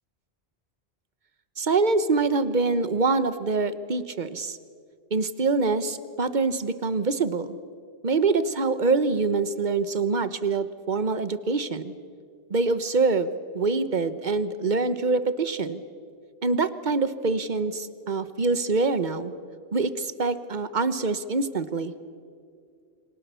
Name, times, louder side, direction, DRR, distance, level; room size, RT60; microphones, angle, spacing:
voice 1, 1.6-4.6 5.1-7.6 8.0-11.9 12.5-15.8 16.4-19.3 19.7-21.9, right 3 dB, 45° right, 13 dB, 1.2 m, -25 dB
29.5 x 24.5 x 6.9 m, 2.2 s
omnidirectional pair, 1.1 m